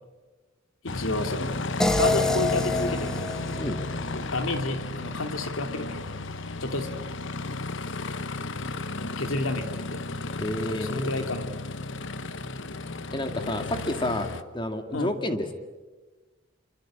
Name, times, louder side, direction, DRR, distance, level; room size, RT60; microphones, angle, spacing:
voice 1, 0.8-1.5 2.0-3.3 4.1-6.1 6.6-7.0 9.0-10.0 10.7-11.5 13.4-13.7 14.9-15.1, left 2 dB, 85° left, 7 dB, 2.7 m, -31 dB
Aircraft, 0.9-14.4, left 2 dB, 65° left, 1.2 m, -33 dB
sound 1, 1.8-4.9, left 2 dB, 5° left, 1.3 m, -28 dB
voice 2, 10.4-11.1 13.1-14.3 14.5-15.5, left 1 dB, 25° left, 7 dB, 2.0 m, -30 dB
27.5 x 24.5 x 8.7 m, 1.3 s
head